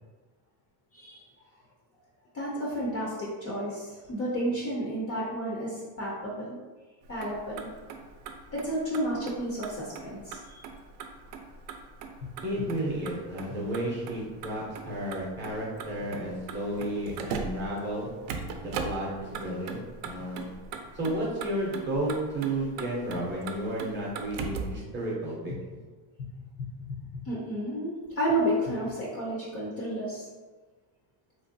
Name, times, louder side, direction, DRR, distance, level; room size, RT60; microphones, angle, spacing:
voice 1, 0.9-1.2 2.3-6.6 7.1-7.7 8.5-10.6 27.2-30.2, right 1 dB, 30° left, -5 dB, 0.4 m, -31 dB
Motor vehicle (road), 7.0-24.8, right 5 dB, 70° right, 0.5 m, -40 dB
voice 2, 12.4-18.1 18.6-20.6 20.9-25.8, right 1 dB, 25° right, -4 dB, 0.5 m, -32 dB
3.1 x 2.5 x 2.6 m, 1.3 s
cardioid pair, 155°, 50 cm